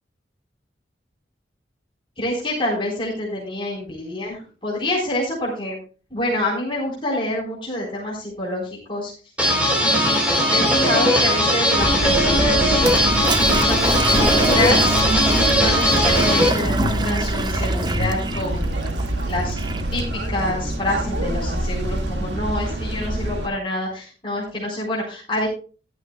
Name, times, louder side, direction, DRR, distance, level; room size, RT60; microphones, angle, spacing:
voice 1, 2.2-5.8 6.1-9.1 9.8-12.8 13.5-15.0 15.5-18.9 19.2-19.6 19.9-25.5, left 1 dB, 30° left, -5 dB, 3.8 m, -27 dB
sound 1, 9.4-16.5, equal, 5° right, 3.2 m, -18 dB
sound 2, 11.8-23.5, right 1 dB, 80° right, 1.8 m, -25 dB
Toilet flush, 12.8-20.0, right 2 dB, 25° right, 0.6 m, -27 dB
14.5 x 11.5 x 2.2 m, 0.37 s
head